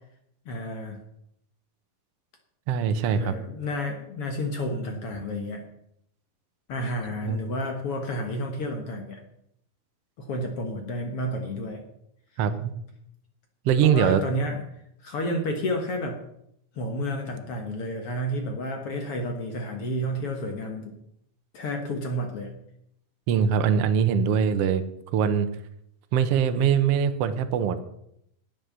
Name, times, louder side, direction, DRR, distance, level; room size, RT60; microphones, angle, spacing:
voice 1, 0.5-1.0 3.1-5.6 6.7-9.2 10.2-11.8 13.8-14.6 15.0-16.2 16.8-21.0 21.5-22.5, equal, 55° left, 4 dB, 1.8 m, -31 dB
voice 2, 2.7-3.4 7.2-7.4 12.4-12.7 13.6-14.2 23.3-24.8 25.1-25.5 26.1-27.8, right 7 dB, 80° right, 9 dB, 1.3 m, -22 dB
11.5 x 8.8 x 6.8 m, 0.75 s
omnidirectional pair, 4.1 m